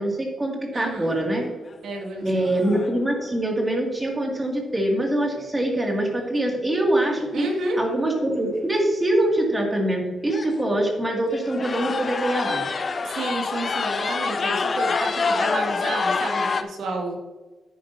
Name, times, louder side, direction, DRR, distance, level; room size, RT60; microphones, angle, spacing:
voice 1, 0.0-1.4 2.2-7.5 7.8-12.7, right 1 dB, 15° right, 0 dB, 2.1 m, -24 dB
voice 2, 0.7-1.2 1.8-2.5 7.3-7.8 13.0-17.2, right 2 dB, 85° right, 0 dB, 2.2 m, -30 dB
sound 1, 1.0-1.4 2.0-2.1 2.4-3.0 6.2-6.3 7.4-7.5 7.7-8.1 8.5-8.6 9.4-9.5 9.7-9.9 10.3-10.7 11.3-16.6, left 4 dB, 35° left, 0.5 m, -26 dB
10.5 x 8.8 x 2.7 m, 1.3 s
wide cardioid pair, 155°, 0 cm